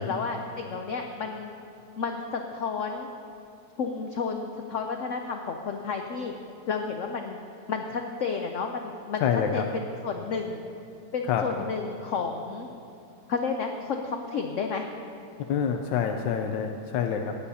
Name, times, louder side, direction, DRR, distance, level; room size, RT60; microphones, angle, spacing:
voice 1, 0.0-1.5 2.0-3.1 3.8-6.3 6.6-7.4 7.7-9.3 9.5-10.6 11.1-12.7 13.3-14.8, left 5 dB, 70° left, 4 dB, 0.7 m, -31 dB
voice 2, 9.2-9.6 11.3-11.6 15.5-17.4, left 7 dB, 90° left, 4 dB, 1.3 m, -27 dB
18.0 x 10.0 x 2.8 m, 2.6 s
omnidirectional pair, 1.9 m